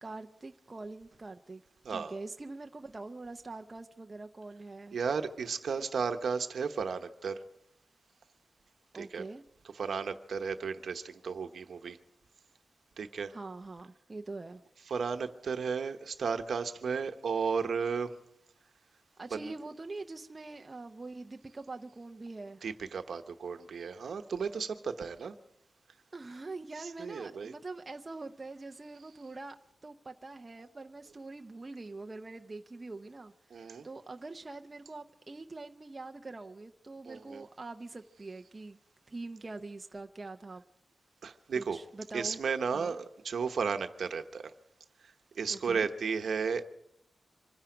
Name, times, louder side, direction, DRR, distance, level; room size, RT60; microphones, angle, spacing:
voice 1, 0.0-1.6 1.9-5.0 5.8-5.9 8.9-9.4 13.3-14.6 19.2-22.6 26.1-29.6 29.8-38.8 39.1-40.6 41.5-42.4 42.7-43.0 45.5-45.9, right 3 dB, 25° right, 5 dB, 0.6 m, -44 dB
voice 2, 4.9-7.4 8.9-9.2 9.7-12.0 13.0-13.3 14.9-18.1 19.3-19.5 22.6-25.4 26.8-27.5 33.5-33.9 37.1-37.4 41.2-41.8 42.1-44.5 45.3-46.6, right 5 dB, 65° right, 7 dB, 1.0 m, -34 dB
25.5 x 10.5 x 5.0 m, 0.77 s
wide cardioid pair, 175°, 0 cm